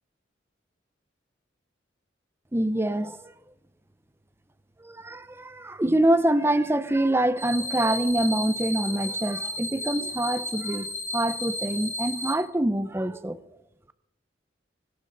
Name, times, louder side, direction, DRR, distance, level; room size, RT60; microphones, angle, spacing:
voice 1, 2.5-3.3 4.8-13.4, right 1 dB, 15° right, 0.6 m, -25 dB
sound 1, 7.4-12.3, equal, 15° left, 2.5 m, -33 dB
24.5 x 12.0 x 4.0 m
head